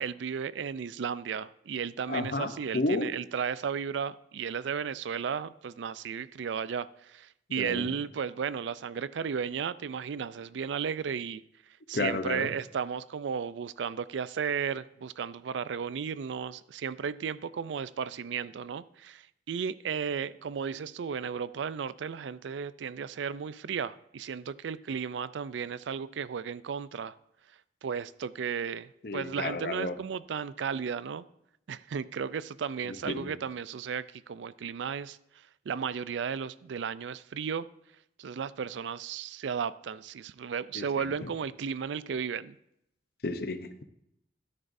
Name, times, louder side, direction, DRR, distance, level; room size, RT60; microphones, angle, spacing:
voice 1, 0.0-11.4 11.9-27.1 27.8-31.2 31.7-35.2 35.7-37.7 38.2-42.6, right 6 dB, 80° right, 0.4 m, -34 dB
voice 2, 2.1-3.1 7.5-7.9 11.9-12.5 29.0-30.0 32.9-33.3 40.7-41.3 43.2-43.8, left 2 dB, 55° left, 0.7 m, -32 dB
13.0 x 10.0 x 2.6 m
head